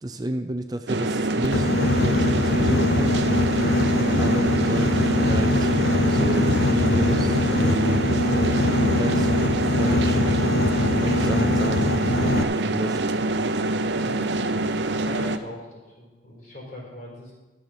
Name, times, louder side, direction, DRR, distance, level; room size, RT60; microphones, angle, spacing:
voice 1, 0.0-3.3 4.2-5.7 6.1-9.4 9.6-10.5 11.0-13.1, right 1 dB, 20° right, 8 dB, 0.4 m, -31 dB
sound 1, 0.9-15.4, right 2 dB, 80° right, 0.7 m, -25 dB
Boat Water vehicle, 1.4-12.4, left 2 dB, 65° left, 0.5 m, -22 dB
voice 2, 13.9-14.2 15.0-17.3, equal, 50° left, -3 dB, 4.3 m, -40 dB
12.5 x 7.0 x 5.9 m, 1.2 s
head